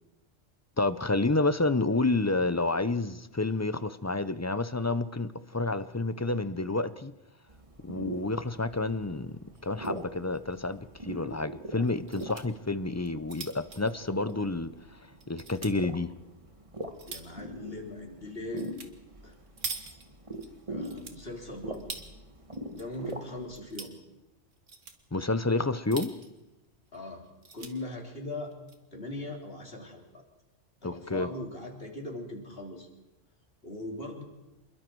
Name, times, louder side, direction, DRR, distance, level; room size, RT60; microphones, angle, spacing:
voice 1, 0.8-7.1 7.8-14.7 15.3-16.1 25.1-26.2 30.8-31.3, left 2 dB, 20° left, 13 dB, 0.5 m, -29 dB
sound 1, 7.5-23.6, right 1 dB, 25° right, 1.7 m, -43 dB
sound 2, 9.5-10.0 10.3-10.4 10.7-10.8 11.8-12.4 13.0-14.8 15.2-15.7 16.4-17.4 18.6-18.9 19.2-20.5 20.8-22.1 22.5-23.1 23.4-24.0 24.5-25.0 25.7-26.4 26.9-27.0 27.2-27.7 28.4-28.8, right 4 dB, 85° right, 2.1 m, -43 dB
voice 2, 17.1-18.7 19.2-19.3 20.7-21.9 22.7-23.9 26.9-27.2 27.5-28.5 28.9-30.2 30.8-32.9 33.6-34.2, left 2 dB, 50° left, 1 dB, 3.8 m, -40 dB
27.0 x 22.0 x 4.7 m, 0.99 s
omnidirectional pair, 1.3 m